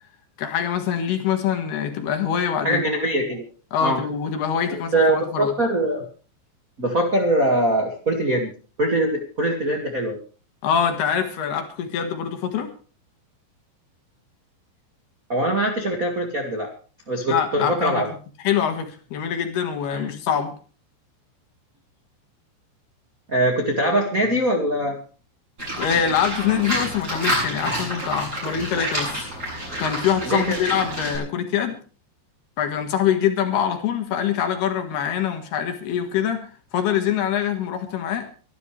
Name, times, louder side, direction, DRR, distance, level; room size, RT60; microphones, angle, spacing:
voice 1, 0.4-2.8 3.7-5.5 10.6-12.7 17.3-18.1 18.4-20.5 25.8-29.3 29.8-31.8 32.6-38.3, left 8 dB, 60° left, 6 dB, 3.5 m, -24 dB
voice 2, 2.6-3.4 3.8-4.0 4.7-6.0 6.8-8.5 8.8-10.2 15.3-16.7 17.1-18.1 19.9-20.1 23.3-25.0 30.3-30.6, right 1 dB, 70° right, 1 dB, 0.8 m, -22 dB
Livestock farm animals working animals, 25.6-31.2, equal, 20° right, 8.1 m, -28 dB
24.5 x 12.0 x 3.3 m, 0.37 s
omnidirectional pair, 5.5 m